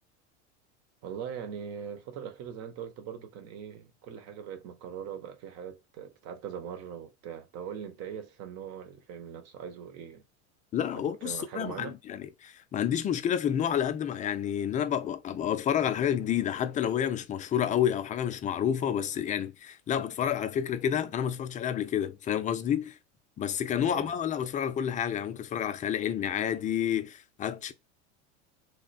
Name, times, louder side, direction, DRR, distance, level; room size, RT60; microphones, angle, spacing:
voice 1, 1.0-10.2 10.9-12.0 23.8-24.1, right 8 dB, 50° right, 1.0 m, -41 dB
voice 2, 10.7-23.0 23.4-27.7, left 9 dB, 25° left, 0.4 m, -29 dB
3.4 x 2.1 x 3.9 m
supercardioid pair, 115°, 33 cm